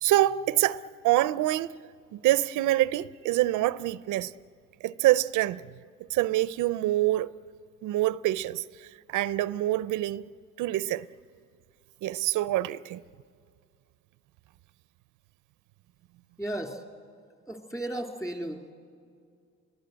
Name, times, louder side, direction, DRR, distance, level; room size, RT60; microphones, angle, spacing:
voice 1, 0.0-1.7 2.1-4.3 4.8-5.6 6.1-7.3 7.8-10.3 10.6-11.1 12.0-13.0, right 15 dB, 85° right, 0.5 m, -26 dB
voice 2, 16.4-16.8 17.5-18.7, right 1 dB, 10° left, 2.7 m, -34 dB
27.0 x 22.0 x 7.9 m
cardioid pair, 90°, 30 cm